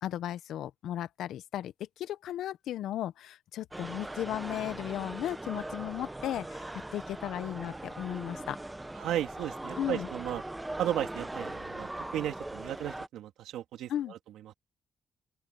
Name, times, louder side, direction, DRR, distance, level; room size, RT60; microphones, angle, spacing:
voice 1, 0.0-6.6 6.9-8.6 9.8-10.1 13.9-14.1, left 12 dB, 80° left, 0.8 m, -35 dB
sound 1, 3.7-13.1, right 1 dB, 10° right, 0.8 m, -40 dB
voice 2, 9.0-10.4 10.8-14.2 14.4-14.5, right 12 dB, 85° right, 3.3 m, -35 dB
open air
cardioid pair, 90°, 0 cm